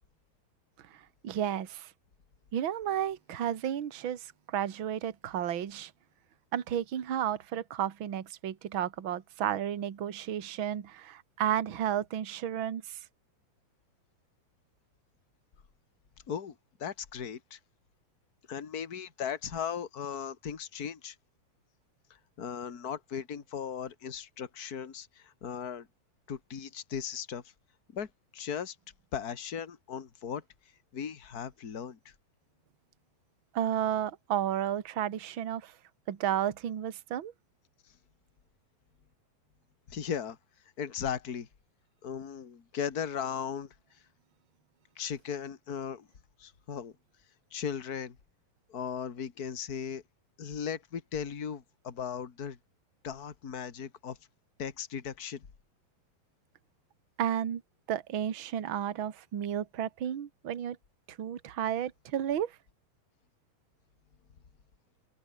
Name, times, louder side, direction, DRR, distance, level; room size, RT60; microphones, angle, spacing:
voice 1, 0.9-1.9 2.5-5.9 6.5-13.0 33.5-35.7 36.1-37.3 57.2-57.6 57.9-60.8 61.1-62.6, right 10 dB, 45° right, 1.8 m, -32 dB
voice 2, 16.3-17.6 18.5-21.2 22.4-25.9 26.3-27.4 27.9-28.8 29.1-30.4 30.9-32.0 39.9-40.4 40.8-41.5 42.0-43.7 45.0-46.1 46.4-46.9 47.5-48.2 48.7-50.0 50.4-52.6 53.0-54.2 54.6-55.5, left 7 dB, 35° left, 1.8 m, -37 dB
omnidirectional pair, 4.4 m